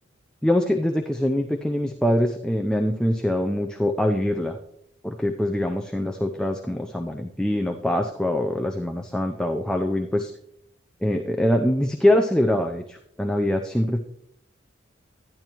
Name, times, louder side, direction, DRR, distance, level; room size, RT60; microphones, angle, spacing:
voice 1, 0.4-4.6 5.0-10.3 11.0-14.0, left 1 dB, 5° left, 3 dB, 0.5 m, -23 dB
12.5 x 10.0 x 3.0 m, 0.75 s
head